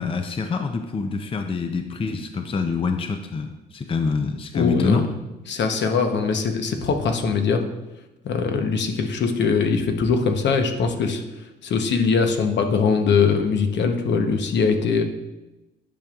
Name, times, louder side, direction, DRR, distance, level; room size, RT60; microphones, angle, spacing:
voice 1, 0.0-5.0, left 4 dB, 25° left, 6 dB, 0.5 m, -26 dB
voice 2, 4.5-5.1 5.5-7.6 8.2-11.2 11.6-15.0, left 5 dB, 65° left, 5 dB, 0.9 m, -21 dB
10.5 x 5.2 x 2.4 m, 1.0 s
cardioid pair, 90°, 20 cm